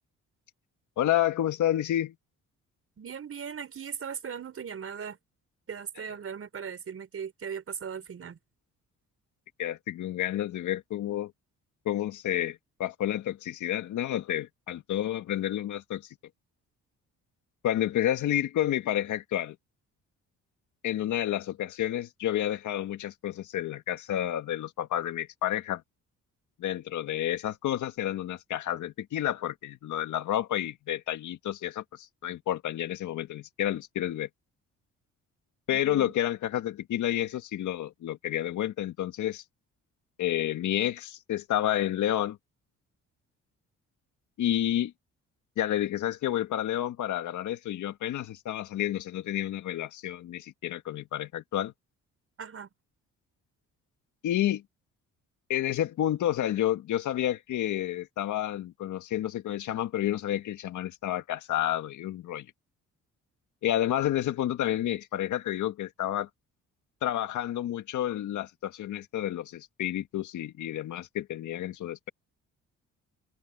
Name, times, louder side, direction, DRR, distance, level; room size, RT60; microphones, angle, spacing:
voice 1, 1.0-2.1 9.6-11.3 11.9-16.0 17.6-19.6 20.8-25.8 26.6-34.3 35.7-39.4 40.2-42.4 44.4-44.9 45.6-51.7 54.2-54.6 55.5-62.5 63.6-66.3 67.0-72.1, left 12 dB, 75° left, 1.8 m, -30 dB
voice 2, 3.0-5.2 5.7-8.4 35.7-36.1 52.4-52.7, right 7 dB, 50° right, 5.4 m, -38 dB
cardioid pair, 90°, 30 cm